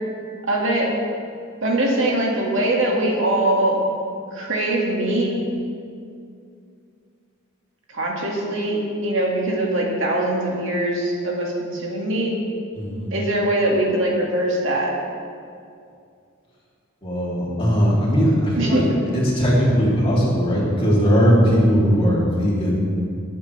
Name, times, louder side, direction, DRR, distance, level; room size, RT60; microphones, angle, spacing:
voice 1, 0.5-0.9 1.6-3.8 4.3-5.3 7.9-12.3 13.1-14.9 18.6-18.8, right 1 dB, 65° right, -2 dB, 2.1 m, -22 dB
voice 2, 12.7-13.1 17.0-18.9 19.1-22.7, equal, 25° left, -6 dB, 3.1 m, -19 dB
19.5 x 9.0 x 3.4 m, 2.4 s
head